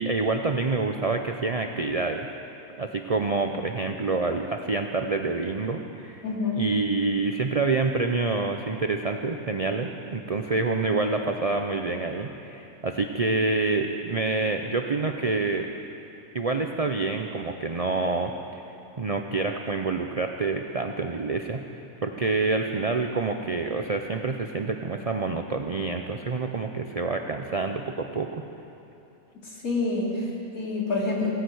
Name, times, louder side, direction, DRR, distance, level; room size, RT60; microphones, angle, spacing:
voice 1, 0.0-2.3 2.8-6.2 6.6-15.7 16.3-21.6 22.0-28.5, right 3 dB, 50° right, 4 dB, 0.4 m, -27 dB
voice 2, 6.2-6.6 29.4-31.3, left 3 dB, 70° left, -4 dB, 3.3 m, -28 dB
17.0 x 10.0 x 7.9 m, 2.9 s
omnidirectional pair, 1.5 m